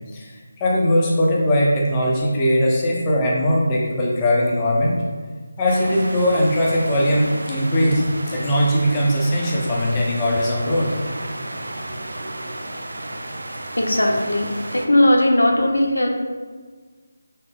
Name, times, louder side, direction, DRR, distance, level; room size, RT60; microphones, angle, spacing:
voice 1, 0.6-5.0 5.6-10.9, equal, 20° left, -3 dB, 0.7 m, -20 dB
sound 1, 5.7-14.9, right 1 dB, 80° right, 0.5 m, -33 dB
voice 2, 13.8-16.1, left 1 dB, 85° left, 1 dB, 0.7 m, -18 dB
5.3 x 2.0 x 3.7 m, 1.4 s
figure-of-eight pair, 165°, 0 cm